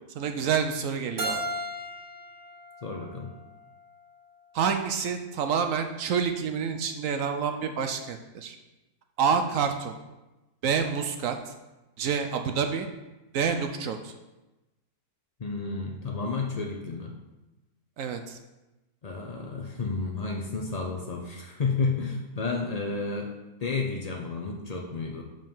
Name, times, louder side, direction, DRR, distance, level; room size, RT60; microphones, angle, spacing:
voice 1, 0.2-1.4 4.5-8.6 9.2-10.0 10.6-11.5 12.0-12.9 13.3-14.1 18.0-18.4, right 6 dB, 70° right, 6 dB, 0.8 m, -28 dB
Keyboard (musical), 1.2-4.0, right 1 dB, 40° right, 0.8 m, -36 dB
voice 2, 2.8-3.3 15.4-17.2 19.0-23.3 23.6-25.2, left 4 dB, 85° left, 1 dB, 0.3 m, -31 dB
5.3 x 5.3 x 5.4 m, 1.0 s
omnidirectional pair, 1.7 m